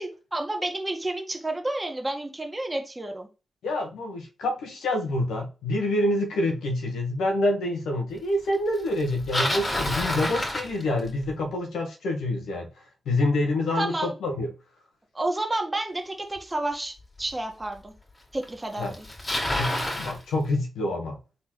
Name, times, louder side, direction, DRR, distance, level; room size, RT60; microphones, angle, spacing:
voice 1, 0.0-3.3 13.8-14.1 15.1-17.9 18.3-19.1, right 2 dB, 25° right, 1.5 m, -30 dB
voice 2, 3.6-12.7 13.0-14.5 18.8-18.9 19.4-21.2, left 1 dB, 85° left, 1.2 m, -27 dB
Bicycle, 9.0-11.3 16.4-16.5 17.3-17.4 18.4-18.5 18.7-20.2, left 1 dB, 30° left, 2.3 m, -28 dB
4.0 x 3.8 x 3.1 m
supercardioid pair, 45°, 0 cm